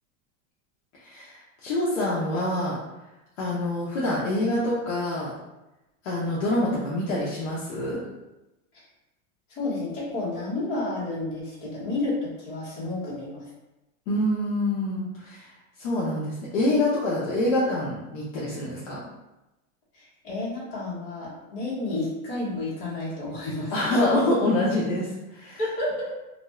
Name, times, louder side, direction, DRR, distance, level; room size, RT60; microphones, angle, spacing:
voice 1, 1.0-1.4 1.6-2.8 3.4-5.3 6.0-8.0 14.1-15.5 15.8-19.0 23.7-25.1 25.3-25.6, left 1 dB, 60° left, -7 dB, 0.8 m, -26 dB
voice 2, 9.5-13.5 19.9-23.7 25.6-26.1, left 2 dB, 40° left, -9 dB, 1.2 m, -31 dB
2.5 x 2.3 x 3.1 m, 0.99 s
supercardioid pair, 175°, 44 cm